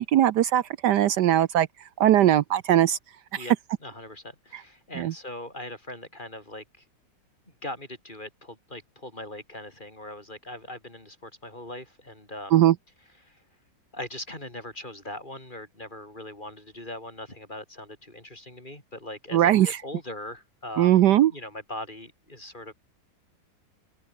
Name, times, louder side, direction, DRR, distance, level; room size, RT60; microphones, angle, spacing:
voice 1, 0.0-1.7 2.0-3.0 3.3-3.5 5.0-5.1 12.5-12.7 19.3-19.8 20.8-21.3, right 12 dB, 70° right, 1.3 m, -20 dB
voice 2, 3.8-6.8 7.6-12.6 13.2-13.4 13.9-21.0 21.3-22.7, left 1 dB, 25° left, 5.4 m, -40 dB
open air
omnidirectional pair, 2.0 m